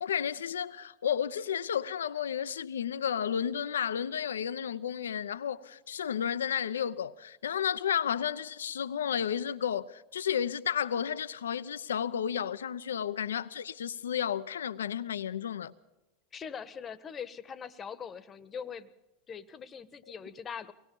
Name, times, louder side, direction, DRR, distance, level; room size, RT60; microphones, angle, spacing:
voice 1, 0.0-15.7, left 8 dB, 80° left, 0.8 m, -32 dB
voice 2, 16.3-18.9 19.3-20.7, left 7 dB, 30° left, 1.3 m, -42 dB
24.0 x 19.5 x 5.5 m
hypercardioid pair, 85°, 0 cm